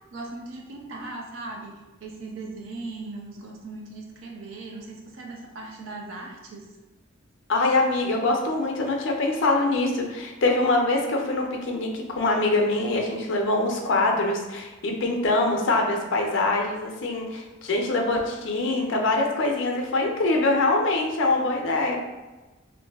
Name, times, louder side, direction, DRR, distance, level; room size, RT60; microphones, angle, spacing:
voice 1, 0.1-6.8, right 2 dB, 80° right, 0 dB, 0.6 m, -38 dB
voice 2, 7.5-22.0, left 2 dB, 65° left, 1 dB, 0.5 m, -24 dB
3.0 x 2.5 x 2.2 m, 1.2 s
head